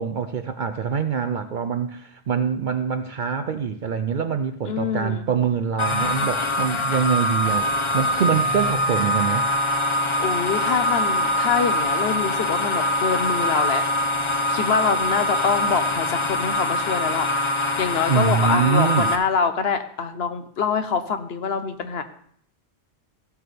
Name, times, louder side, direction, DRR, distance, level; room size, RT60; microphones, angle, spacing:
voice 1, 0.0-9.5 18.1-19.1, right 7 dB, 55° right, 9 dB, 0.6 m, -24 dB
voice 2, 4.6-5.2 10.2-13.9 14.5-17.3 17.8-22.0, left 6 dB, 70° left, 9 dB, 1.1 m, -25 dB
sound 1, 5.8-19.2, left 1 dB, 30° left, 0.8 m, -23 dB
15.0 x 8.0 x 3.4 m, 0.64 s
omnidirectional pair, 1.1 m